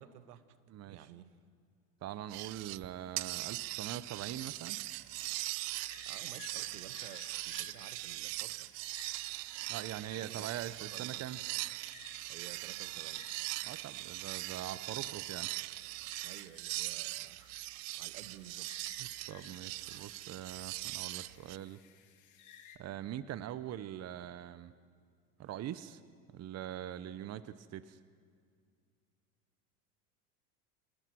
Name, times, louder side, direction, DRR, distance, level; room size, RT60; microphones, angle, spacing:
voice 1, 0.0-0.6 0.9-1.4 6.0-8.7 10.1-10.5 10.9-11.3 12.3-13.3 16.2-17.6 17.9-18.8 25.4-25.5, right 11 dB, 80° right, 14 dB, 1.2 m, -53 dB
voice 2, 0.7-1.1 2.0-4.8 9.7-11.4 13.6-15.6 19.0-21.8 22.8-24.7 25.4-26.0 26.3-28.0, right 11 dB, 35° right, 15 dB, 0.9 m, -43 dB
sound 1, 2.3-2.9 3.2-21.6, right 23 dB, 50° right, 0.5 m, -41 dB
sound 2, 4.2-22.8, left 9 dB, 40° left, 2.2 m, -59 dB
26.0 x 18.5 x 6.1 m, 2.2 s
hypercardioid pair, 90°, 46 cm